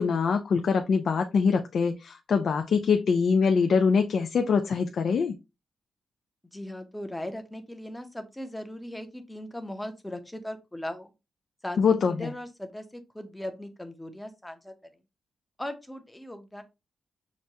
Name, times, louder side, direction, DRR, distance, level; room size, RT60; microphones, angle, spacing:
voice 1, 0.0-5.3 11.8-12.3, left 5 dB, 65° left, 6 dB, 0.4 m, -24 dB
voice 2, 6.5-11.1 11.6-14.7 15.6-16.6, left 1 dB, 10° left, 6 dB, 0.7 m, -38 dB
6.0 x 2.2 x 2.7 m, 0.25 s
cardioid pair, 100°, 0 cm